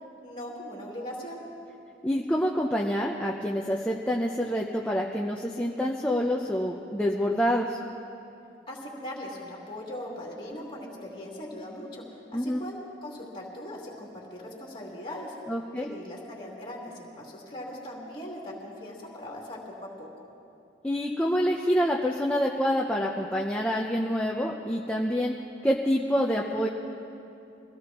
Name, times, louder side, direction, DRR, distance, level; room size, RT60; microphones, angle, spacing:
voice 1, 0.2-1.4 8.7-12.0 12.3-15.3 15.7-20.1, left 1 dB, 25° left, -3 dB, 2.7 m, -40 dB
voice 2, 2.0-7.8 12.3-12.6 15.5-15.9 20.8-25.3 25.6-26.7, equal, 5° left, -2 dB, 0.6 m, -27 dB
23.0 x 16.5 x 3.0 m, 2.7 s
head